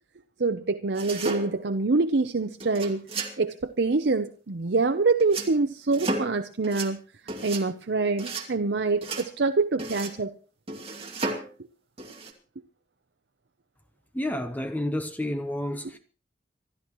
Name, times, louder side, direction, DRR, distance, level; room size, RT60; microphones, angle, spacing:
voice 1, 0.4-3.0 3.4-7.0 7.4-10.3, right 3 dB, 70° right, 0.7 m, -25 dB
sound 1, 0.9-1.8 2.6-3.4 5.2-5.5 5.9-6.4 6.6-6.9 7.3-7.6 8.2-8.5 9.0-9.3 9.8-10.2 10.7-11.5 12.0-12.3, right 2 dB, 35° right, 2.5 m, -33 dB
voice 2, 14.1-16.0, left 1 dB, 10° left, 0.9 m, -30 dB
26.0 x 13.0 x 3.1 m
head